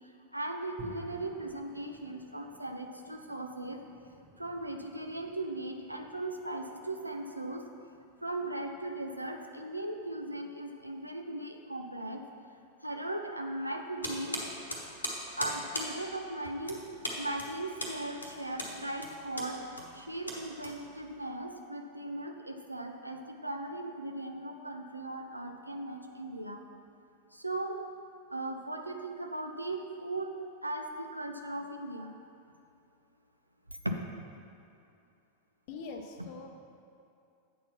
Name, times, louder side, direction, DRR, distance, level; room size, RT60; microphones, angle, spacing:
voice 1, 0.3-3.8 4.4-7.7 8.2-12.2 12.8-14.4 15.4-16.8 17.2-19.6 19.9-26.6 27.3-27.8 28.3-30.3 30.6-32.1 33.8-33.9, right 1 dB, 85° right, 4 dB, 0.5 m, -38 dB
sound 1, 0.8-11.0, right 1 dB, 5° left, 1.6 m, -57 dB
sound 2, 14.0-21.2, left 1 dB, 80° left, 1.0 m, -39 dB
voice 2, 35.7-36.5, left 4 dB, 45° left, 4 dB, 0.7 m, -43 dB
8.2 x 4.4 x 5.6 m, 2.6 s
figure-of-eight pair, 90°, 0 cm